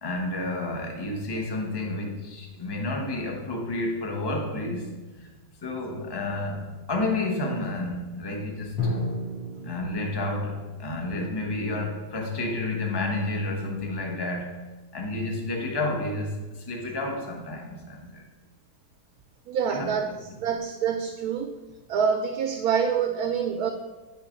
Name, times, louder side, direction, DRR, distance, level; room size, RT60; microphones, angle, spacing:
voice 1, 0.0-4.9 5.2-5.4 5.6-9.1 9.6-14.5 14.9-18.2 19.7-19.9, left 2 dB, 20° left, 1 dB, 0.6 m, -30 dB
Drum, 8.8-12.6, left 2 dB, 60° left, 2.8 m, -34 dB
voice 2, 19.5-20.1 20.4-21.6 21.9-23.7, right 7 dB, 70° right, 6 dB, 0.9 m, -26 dB
9.5 x 3.5 x 5.1 m, 1.2 s
omnidirectional pair, 1.9 m